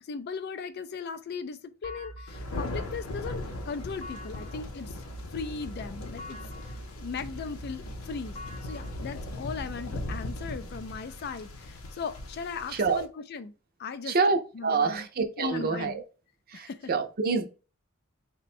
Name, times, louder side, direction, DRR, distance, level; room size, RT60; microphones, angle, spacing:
voice 1, 0.0-4.9 5.3-8.4 8.6-13.5 13.8-14.2 14.6-15.1 15.4-16.0 16.5-16.9, left 5 dB, 50° left, 0.3 m, -38 dB
sound 1, 1.8-10.5, right 1 dB, 30° left, 0.9 m, -44 dB
Thunder, 2.3-13.0, left 2 dB, 85° left, 0.7 m, -39 dB
voice 2, 12.7-13.0 14.0-16.0 16.5-17.5, right 4 dB, 45° right, 0.5 m, -27 dB
4.0 x 2.2 x 4.2 m
head